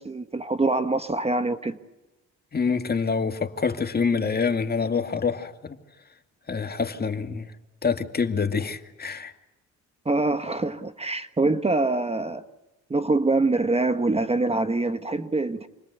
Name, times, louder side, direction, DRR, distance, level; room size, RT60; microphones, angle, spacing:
voice 1, 0.0-1.8 10.0-12.4 12.9-15.7, right 2 dB, 20° right, 1.2 m, -24 dB
voice 2, 2.5-5.8 6.5-7.5 7.8-9.3, left 5 dB, 30° left, 2.1 m, -26 dB
28.5 x 21.0 x 8.2 m
cardioid pair, 90°, 30 cm